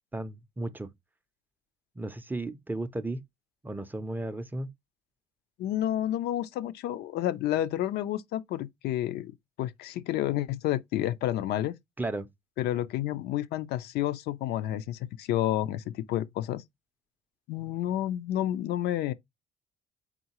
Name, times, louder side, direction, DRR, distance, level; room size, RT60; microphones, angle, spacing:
voice 1, 0.1-0.9 2.0-3.2 3.6-4.7 12.0-12.3, right 2 dB, 10° right, 0.4 m, -34 dB
voice 2, 5.6-9.3 9.6-11.7 12.6-16.6 17.5-19.1, left 13 dB, 75° left, 0.4 m, -30 dB
3.9 x 3.6 x 2.8 m
cardioid pair, 110°, 17 cm